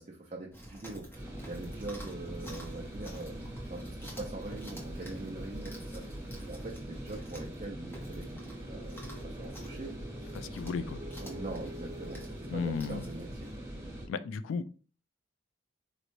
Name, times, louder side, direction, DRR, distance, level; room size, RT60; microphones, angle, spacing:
voice 1, 0.0-9.9 10.2-10.4 11.2-13.5, right 2 dB, 35° right, -1 dB, 0.4 m, -43 dB
Chewing mastication, 0.5-13.6, right 1 dB, 10° left, 0.7 m, -50 dB
sound 1, 1.1-14.1, right 1 dB, 10° right, 1.1 m, -42 dB
voice 2, 10.3-11.0 12.5-13.1 14.1-14.7, left 5 dB, 85° left, 13 dB, 0.3 m, -34 dB
3.9 x 2.1 x 3.0 m, 0.37 s
head